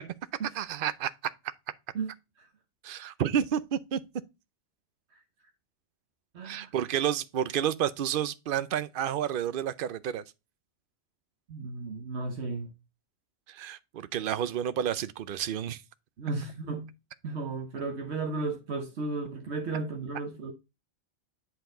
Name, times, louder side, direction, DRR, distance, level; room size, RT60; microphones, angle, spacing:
voice 1, 0.5-1.1 2.8-4.0 6.4-10.2 13.5-15.8, right 9 dB, 60° right, 0.7 m, -30 dB
voice 2, 6.3-6.7 11.5-12.7 16.2-16.9 17.2-20.5, right 3 dB, 75° right, 1.3 m, -34 dB
8.1 x 4.6 x 3.7 m
omnidirectional pair, 1.1 m